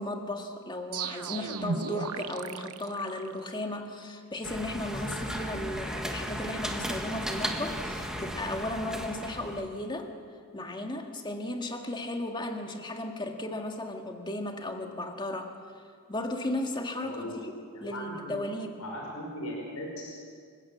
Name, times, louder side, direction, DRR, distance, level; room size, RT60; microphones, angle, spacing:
voice 1, 0.0-10.1 10.5-15.5 16.1-17.3 17.8-18.8, left 1 dB, 20° left, 3 dB, 1.9 m, -35 dB
sound 1, 0.9-3.7, right 5 dB, 90° right, 0.9 m, -35 dB
sound 2, 4.4-9.6, equal, 5° right, 1.6 m, -35 dB
voice 2, 17.0-17.3 17.7-18.3 18.8-20.1, left 1 dB, 85° left, -2 dB, 5.1 m, -38 dB
26.0 x 16.0 x 7.5 m, 2.2 s
head